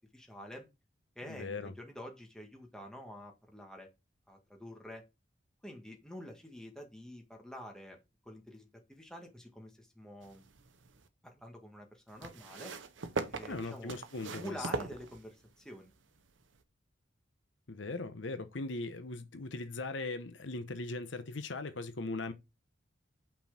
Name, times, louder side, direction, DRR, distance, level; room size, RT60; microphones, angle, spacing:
voice 1, 0.1-0.7 1.2-3.9 4.3-5.0 5.6-10.4 11.2-12.7 13.3-13.9 14.3-15.9, equal, 5° left, 1.9 m, -48 dB
voice 2, 1.3-1.7 13.5-14.7 17.7-22.3, left 3 dB, 80° left, 0.9 m, -39 dB
sound 1, 10.2-11.1 12.2-15.6 16.6-16.7, right 3 dB, 85° right, 0.9 m, -40 dB
5.8 x 4.6 x 6.0 m
head